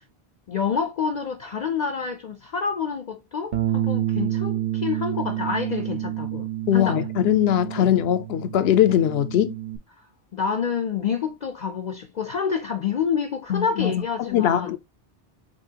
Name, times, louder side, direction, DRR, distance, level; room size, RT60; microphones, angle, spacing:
voice 1, 0.5-7.1 7.8-7.9 10.3-14.8, left 6 dB, 50° left, 0.6 m, -28 dB
Bass guitar, 3.5-9.8, right 13 dB, 50° right, 0.9 m, -29 dB
voice 2, 6.7-9.5 13.5-13.9 14.2-14.8, left 11 dB, 75° left, 0.8 m, -21 dB
6.1 x 2.7 x 2.8 m
omnidirectional pair, 1.1 m